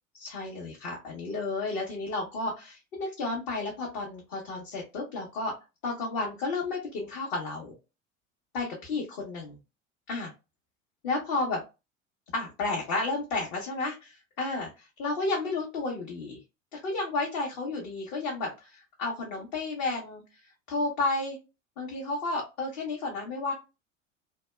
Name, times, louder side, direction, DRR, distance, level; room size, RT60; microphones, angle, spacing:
voice 1, 0.1-5.5 5.8-7.8 8.5-9.6 10.1-10.3 11.0-11.6 12.3-16.4 16.7-20.4 20.7-21.4 21.8-23.5, left 3 dB, 50° left, -3 dB, 0.9 m, -32 dB
2.7 x 2.2 x 2.2 m, 0.27 s
figure-of-eight pair, 75°, 39 cm